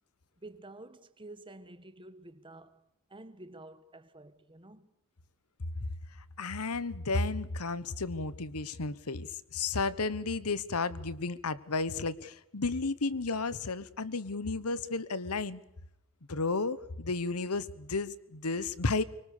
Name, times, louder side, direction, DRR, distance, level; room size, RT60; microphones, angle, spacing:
voice 1, 0.4-2.8 3.1-4.9, right 2 dB, 20° right, 1.5 m, -50 dB
voice 2, 6.4-15.6 16.3-19.0, left 3 dB, 85° left, 1.2 m, -33 dB
25.0 x 24.0 x 6.7 m
head